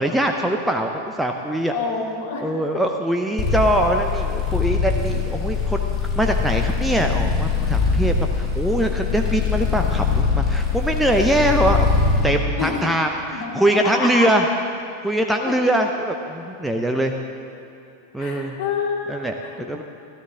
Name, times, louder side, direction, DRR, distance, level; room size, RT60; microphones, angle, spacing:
voice 1, 0.0-1.7 2.4-5.9 6.2-14.5 15.0-17.1 18.1-18.6 19.1-19.8, right 1 dB, 5° right, 3 dB, 0.7 m, -22 dB
voice 2, 1.7-2.5 12.5-12.8 13.3-14.3 15.5-15.6 18.2-19.1 19.4-19.6, left 5 dB, 50° left, -1 dB, 2.2 m, -27 dB
sound 1, 3.4-12.3, left 5 dB, 20° left, 3.5 m, -22 dB
15.5 x 13.5 x 3.8 m, 2.9 s
figure-of-eight pair, 90°, 0 cm